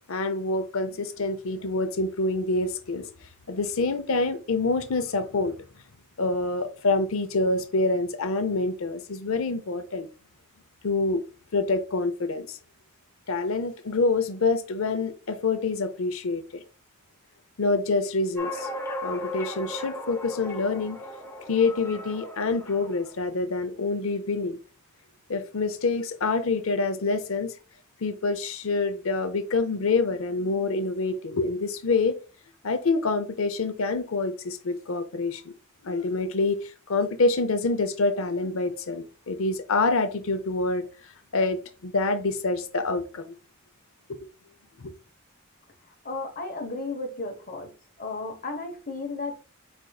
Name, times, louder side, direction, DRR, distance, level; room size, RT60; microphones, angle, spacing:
voice 1, 0.1-3.1 3.5-5.6 6.2-10.1 10.8-11.2 11.5-12.6 13.3-16.6 17.6-18.7 19.0-21.0 21.5-24.6 25.3-27.5 28.0-32.2 32.6-35.5 35.8-43.3 44.1-44.2 44.8-44.9, left 3 dB, 70° left, 0.6 m, -26 dB
sound 1, 18.4-23.1, left 1 dB, 10° left, 0.7 m, -36 dB
voice 2, 46.0-47.7 48.0-49.3, left 3 dB, 40° left, 1.0 m, -33 dB
5.0 x 4.4 x 2.3 m
head